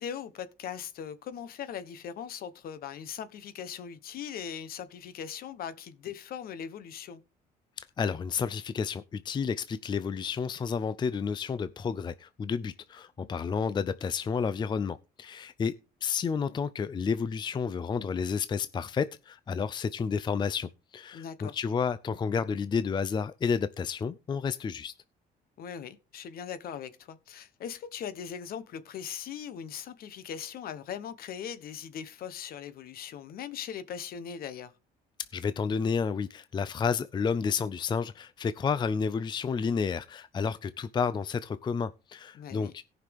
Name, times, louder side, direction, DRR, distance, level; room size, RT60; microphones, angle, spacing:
voice 1, 0.0-7.2 21.1-21.6 25.6-34.7 42.3-42.7, left 8 dB, 60° left, 1.1 m, -40 dB
voice 2, 7.8-15.7 16.0-24.9 35.3-42.8, left 6 dB, 25° left, 0.5 m, -31 dB
17.0 x 5.8 x 3.5 m
cardioid pair, 110°, 17 cm